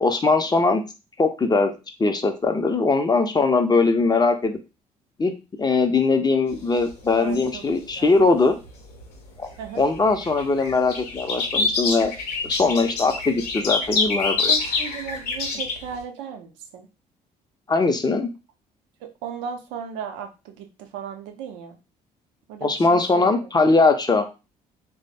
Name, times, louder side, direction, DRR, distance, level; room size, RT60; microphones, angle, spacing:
voice 1, 0.0-0.8 1.2-1.7 2.0-4.6 5.2-5.3 5.6-8.6 9.4-9.5 9.8-12.1 12.4-14.5 17.7-18.3 22.6-24.3, left 3 dB, 20° left, 6 dB, 0.5 m, -20 dB
sound 1, 6.5-9.0 9.4-15.9, left 4 dB, 75° left, 0.6 m, -26 dB
voice 2, 7.2-7.6 8.0-8.2 9.6-9.8 14.5-16.9 19.0-21.8 22.5-23.5, right 7 dB, 65° right, 5 dB, 0.5 m, -36 dB
3.1 x 2.0 x 2.7 m, 0.29 s
figure-of-eight pair, 45°, 21 cm